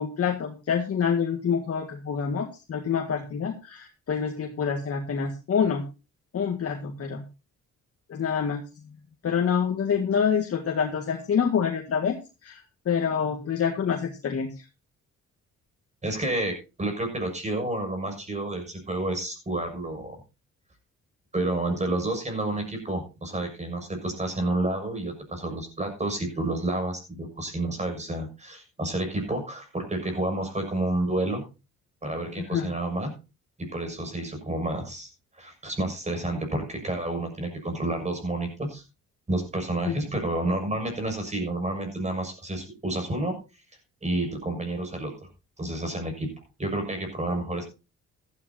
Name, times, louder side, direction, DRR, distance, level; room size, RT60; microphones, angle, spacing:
voice 1, 0.0-5.8 6.3-7.2 8.1-8.6 9.2-12.2 12.4-14.6 32.4-32.7 39.9-40.0, left 7 dB, 50° left, 2 dB, 1.9 m, -27 dB
voice 2, 16.0-20.2 21.3-31.4 32.0-33.1 33.6-35.1 35.3-38.8 39.3-43.3 44.0-45.3 45.6-46.3 46.6-47.6, right 1 dB, 25° right, 4 dB, 7.0 m, -30 dB
15.5 x 12.5 x 2.8 m, 0.29 s
cardioid pair, 90°, 30 cm